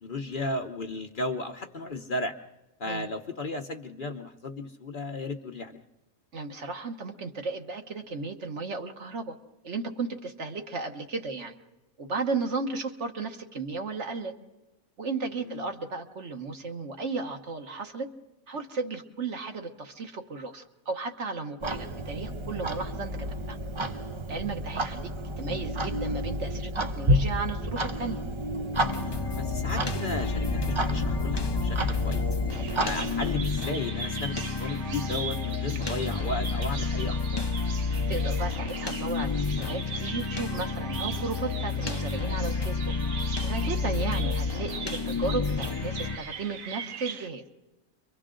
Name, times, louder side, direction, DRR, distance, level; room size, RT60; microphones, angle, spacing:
voice 1, 0.0-2.3 2.8-5.8 15.4-15.6 29.4-32.3 32.8-37.4 43.8-43.9, left 2 dB, 45° left, 5 dB, 0.9 m, -34 dB
voice 2, 6.3-9.4 9.6-11.5 12.0-14.3 15.0-18.1 18.5-23.6 24.3-25.1 25.4-28.2 38.1-42.9 43.4-47.4, right 4 dB, 60° right, 5 dB, 1.4 m, -34 dB
Clock, 21.6-33.4, right 1 dB, 35° right, 0.5 m, -31 dB
sound 1, 28.7-46.2, left 4 dB, 25° left, 0.5 m, -30 dB
Bird vocalization bird call bird song, 32.5-47.3, right 6 dB, 75° right, 1.3 m, -41 dB
29.5 x 24.0 x 3.8 m, 1.0 s
omnidirectional pair, 1.4 m